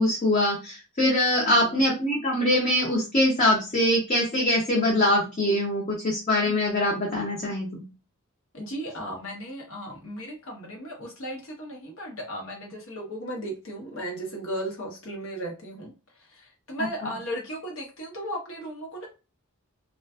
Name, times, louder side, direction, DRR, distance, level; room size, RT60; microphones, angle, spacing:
voice 1, 0.0-7.8 16.8-16.9, left 1 dB, 35° left, -2 dB, 0.6 m, -23 dB
voice 2, 1.5-1.8 8.5-15.9 16.3-19.1, right 1 dB, 70° left, 0 dB, 0.9 m, -36 dB
2.4 x 2.4 x 2.3 m, 0.30 s
head